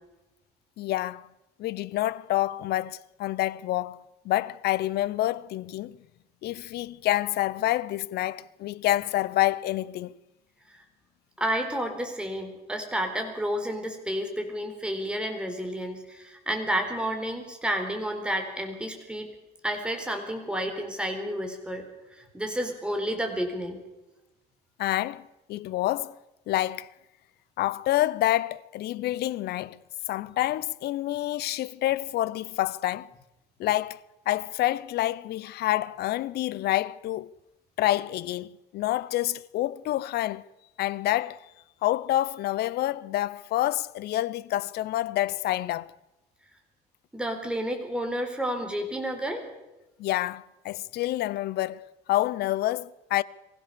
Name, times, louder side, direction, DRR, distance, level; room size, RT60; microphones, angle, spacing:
voice 1, 0.8-1.3 1.6-6.0 6.4-10.1 24.8-26.2 26.5-26.9 27.6-29.8 30.1-33.1 33.6-34.0 34.3-37.3 37.8-40.4 40.8-41.4 41.8-45.9 50.0-53.2, left 15 dB, 70° left, 0.7 m, -28 dB
voice 2, 11.4-19.3 19.6-23.8 47.1-49.4, equal, 5° right, 4.2 m, -31 dB
23.5 x 16.0 x 7.0 m
cardioid pair, 110°, 17 cm